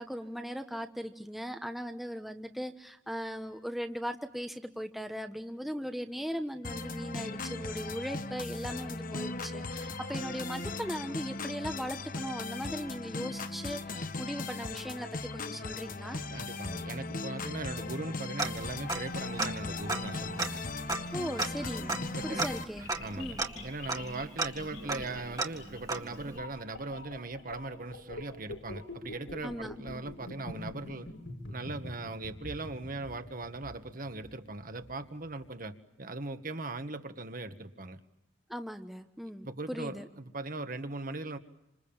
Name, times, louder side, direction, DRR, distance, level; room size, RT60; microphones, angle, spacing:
voice 1, 0.0-16.2 21.1-21.9 22.2-22.9 23.2-23.4 29.4-29.7 38.5-40.1, equal, ahead, 5 dB, 1.1 m, -38 dB
sound 1, 6.6-22.6, left 3 dB, 45° left, 1.3 m, -38 dB
voice 2, 16.3-20.6 22.1-22.5 22.8-31.1 31.5-38.0 39.4-41.4, right 2 dB, 45° right, 8 dB, 1.8 m, -39 dB
Tick-tock, 18.4-19.1 19.4-19.5 19.9-26.4, right 3 dB, 20° right, 1.9 m, -36 dB
sound 2, 21.6-35.5, left 2 dB, 90° left, 6.2 m, -45 dB
28.0 x 26.5 x 7.3 m, 0.85 s
head